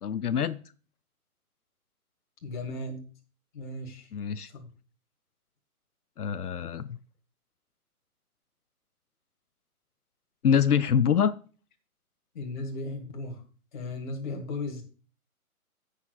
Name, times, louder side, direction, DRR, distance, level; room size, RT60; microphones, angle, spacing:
voice 1, 0.0-0.6 4.1-4.5 6.2-7.0 10.4-11.3, left 8 dB, 90° left, 15 dB, 0.6 m, -25 dB
voice 2, 2.4-3.0 3.5-4.1 4.5-4.7 12.3-13.4 13.7-14.8, left 2 dB, 30° left, 3 dB, 1.8 m, -36 dB
16.0 x 6.6 x 2.3 m, 0.38 s
figure-of-eight pair, 145°, 44 cm